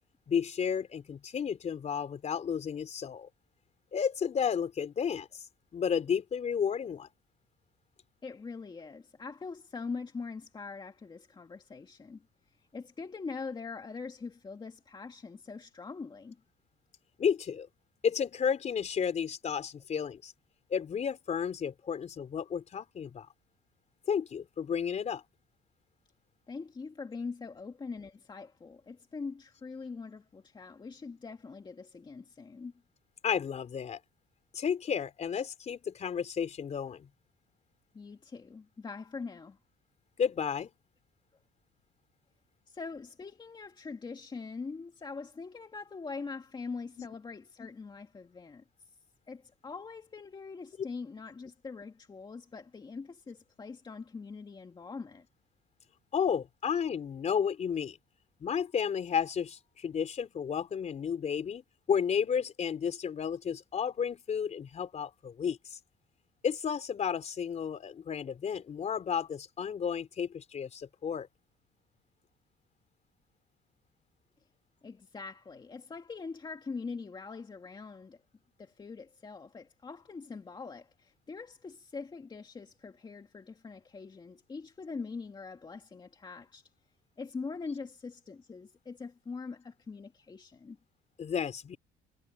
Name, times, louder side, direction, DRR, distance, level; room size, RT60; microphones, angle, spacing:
voice 1, 0.3-3.3 3.9-5.3 5.7-7.1 17.2-17.7 18.0-20.3 20.7-23.3 24.1-25.2 33.2-34.0 34.5-37.1 40.2-40.7 47.0-47.1 56.1-58.0 58.4-65.8 66.4-71.3 91.2-91.8, left 7 dB, 40° left, 3.7 m, -32 dB
voice 2, 8.2-12.2 12.7-16.4 26.5-32.7 37.9-39.6 42.7-48.6 49.3-55.3 74.8-78.2 78.6-86.7 87.2-90.8, left 4 dB, 25° left, 2.2 m, -43 dB
cardioid pair, 110°, 17 cm